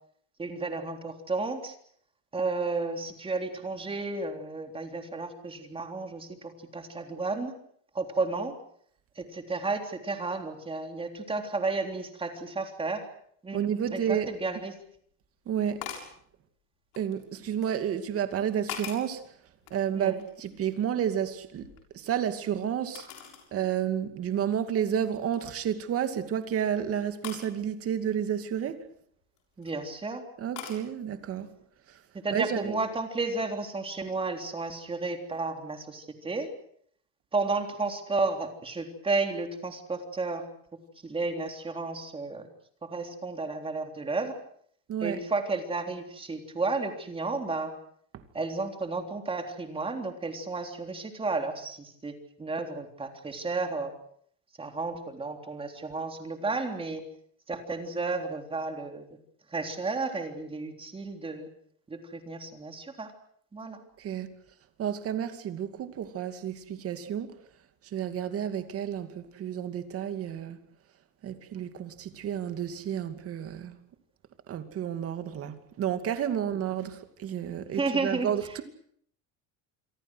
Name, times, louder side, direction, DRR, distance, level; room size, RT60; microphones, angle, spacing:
voice 1, 0.4-1.8 2.3-7.5 7.9-8.6 9.2-13.1 13.4-13.6 13.9-14.7 19.9-20.2 29.6-30.2 32.1-36.5 37.3-40.5 41.0-42.5 42.8-44.4 45.0-47.7 48.3-53.9 54.6-57.0 57.5-59.2 59.5-61.5 61.9-63.1 63.5-63.8 77.7-78.6, right 3 dB, 15° right, 3.6 m, -32 dB
voice 2, 13.5-14.3 15.5-15.9 17.0-19.2 19.7-23.1 23.5-28.8 30.4-31.5 32.3-32.8 44.9-45.2 64.0-64.3 64.8-67.3 67.9-70.6 71.2-73.8 74.5-78.6, right 9 dB, 35° right, 2.6 m, -31 dB
sound 1, 14.3-14.4 15.8-16.2 16.9-17.7 18.3-19.2 19.6-20.7 21.0-22.3 23.0-23.5 24.0-24.1 24.7-24.9 25.3-25.7 27.2-27.5 29.2-29.7 30.6-30.8, left 9 dB, 60° left, 7.1 m, -42 dB
28.0 x 23.0 x 6.4 m
cardioid pair, 150°, 40 cm